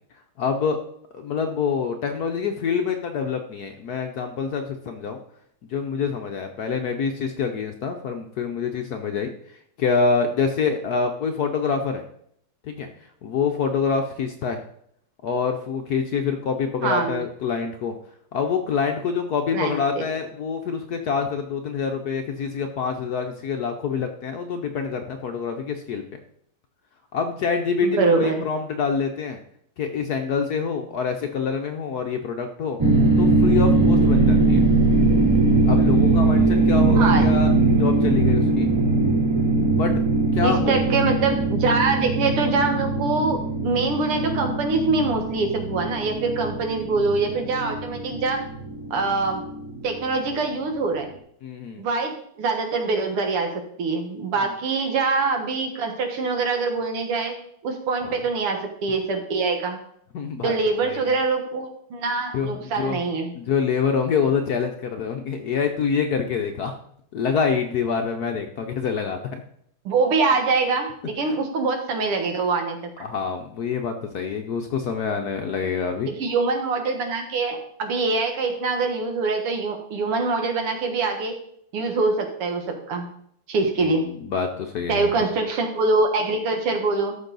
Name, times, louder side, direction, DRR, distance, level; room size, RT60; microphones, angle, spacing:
voice 1, 0.4-0.8 1.1-5.2 5.7-9.3 9.8-12.0 12.7-12.9 13.2-14.6 15.2-17.9 18.3-26.0 27.1-29.4 29.8-32.8 33.2-34.6 35.7-38.7 39.7-39.9 40.3-40.8 51.4-51.8 58.0-58.2 60.1-60.5 60.8-61.2 62.3-63.0 63.3-66.7 67.1-69.2 71.3-71.4 73.0-76.1 83.8-83.9 84.2-85.1, left 6 dB, 65° left, 5 dB, 1.0 m, -26 dB
voice 2, 16.8-17.2 19.5-20.0 27.8-28.4 36.9-37.3 40.4-48.4 48.9-49.4 49.8-51.1 51.8-52.1 52.4-53.5 53.8-57.3 57.6-59.8 60.4-63.3 69.9-72.8 76.1-81.4 81.7-83.1 83.5-84.1 84.9-87.2, right 3 dB, 85° right, 4 dB, 2.4 m, -24 dB
sound 1, 32.8-50.0, right 3 dB, 30° right, 0.4 m, -20 dB
13.5 x 6.1 x 4.0 m, 0.68 s
omnidirectional pair, 2.4 m